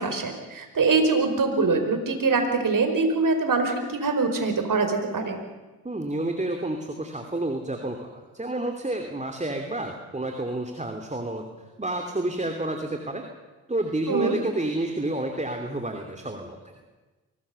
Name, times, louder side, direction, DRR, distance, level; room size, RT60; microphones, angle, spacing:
voice 1, 0.0-5.4 14.1-14.4, right 4 dB, 45° right, 5 dB, 5.0 m, -23 dB
voice 2, 5.8-11.4 11.8-13.2 13.7-16.8, right 1 dB, 15° right, 4 dB, 3.1 m, -30 dB
24.0 x 19.0 x 7.0 m, 1.2 s
hypercardioid pair, 45°, 43 cm